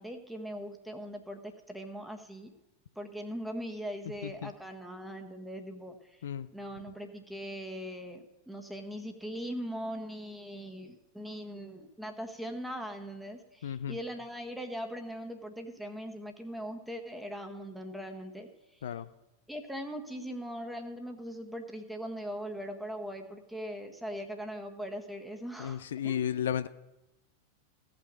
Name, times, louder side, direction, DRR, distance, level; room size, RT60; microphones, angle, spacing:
voice 1, 0.0-2.5 2.9-6.2 6.5-18.9 19.5-26.5, equal, ahead, 4 dB, 1.4 m, -40 dB
voice 2, 13.6-14.0 18.8-19.0 25.6-26.7, left 9 dB, 60° left, 14 dB, 0.4 m, -33 dB
16.0 x 6.0 x 6.3 m, 0.97 s
figure-of-eight pair, 90°, 0 cm